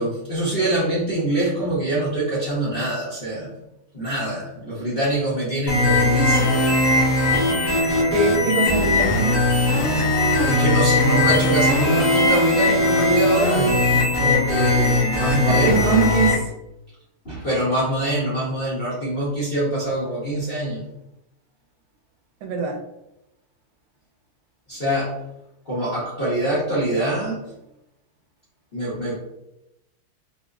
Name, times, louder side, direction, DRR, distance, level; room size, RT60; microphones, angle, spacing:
voice 1, 0.0-3.5 3.9-6.5 10.4-13.7 14.2-16.1 17.2-20.8 24.7-25.2 25.7-27.4 28.7-29.2, right 1 dB, 40° left, -10 dB, 0.8 m, -24 dB
sound 1, 5.7-16.3, left 2 dB, 70° left, 1.8 m, -19 dB
voice 2, 8.1-9.4 15.5-16.4 22.4-22.8, right 4 dB, 85° right, 1 dB, 1.5 m, -22 dB
4.8 x 2.0 x 2.4 m, 0.89 s
omnidirectional pair, 2.3 m